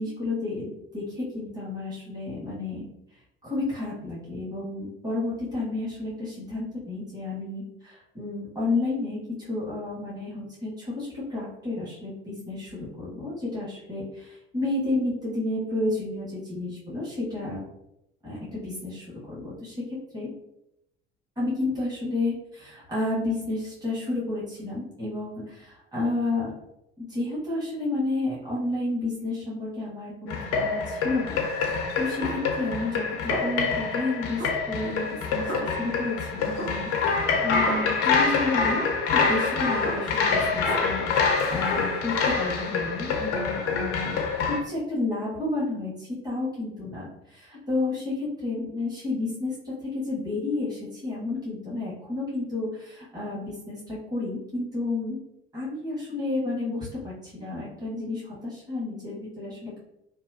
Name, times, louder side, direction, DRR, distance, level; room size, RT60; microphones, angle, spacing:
voice 1, 0.0-2.8 3.4-17.6 18.2-20.3 21.4-25.6 25.9-26.5 27.0-55.2 55.5-59.8, left 2 dB, 10° right, -8 dB, 1.3 m, -31 dB
sound 1, 30.3-44.6, left 4 dB, 45° left, 0.5 m, -26 dB
Snare drum, 32.2-33.0 33.3-34.1 34.4-36.2 36.6-38.3 38.8-40.4 40.7-40.9, right 2 dB, 35° right, 1.0 m, -37 dB
2.8 x 2.2 x 2.3 m, 0.84 s
figure-of-eight pair, 55°, 32 cm